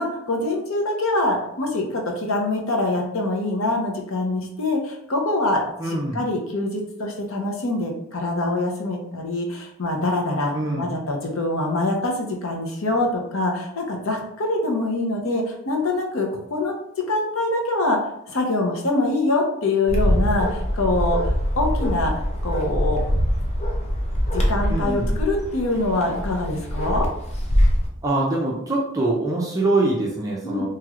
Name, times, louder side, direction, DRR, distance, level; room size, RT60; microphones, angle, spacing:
voice 1, 0.0-16.7 17.1-18.0 18.3-22.1 22.4-23.0 24.3-27.1 30.4-30.7, left 2 dB, 75° left, 1 dB, 0.7 m, -24 dB
voice 2, 5.8-6.2 10.5-10.9 24.7-25.1 28.0-30.7, right 2 dB, 15° right, -3 dB, 0.4 m, -24 dB
Bark, 19.9-27.9, equal, 30° left, 0.5 m, -23 dB
3.0 x 3.0 x 2.4 m, 0.76 s
head